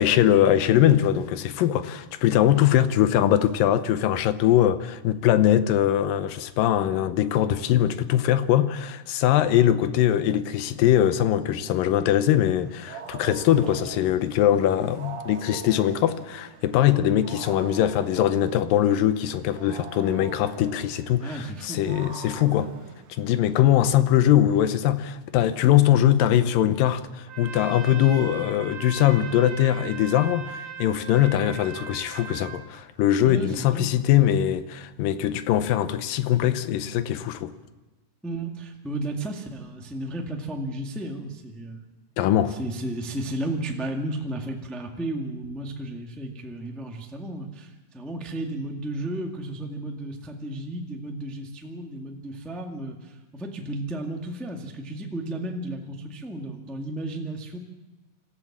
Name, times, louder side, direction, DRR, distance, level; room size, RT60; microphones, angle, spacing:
voice 1, 0.0-22.7 23.2-37.5 42.2-42.6, left 11 dB, 75° left, 2.4 m, -21 dB
Wild animals, 12.5-23.7, right 7 dB, 90° right, 3.4 m, -43 dB
voice 2, 21.2-21.8 33.2-33.9 38.2-41.8 42.5-57.6, right 1 dB, ahead, 0.5 m, -33 dB
Trumpet, 27.3-32.7, right 6 dB, 70° right, 3.5 m, -39 dB
26.0 x 14.5 x 7.4 m
omnidirectional pair, 4.2 m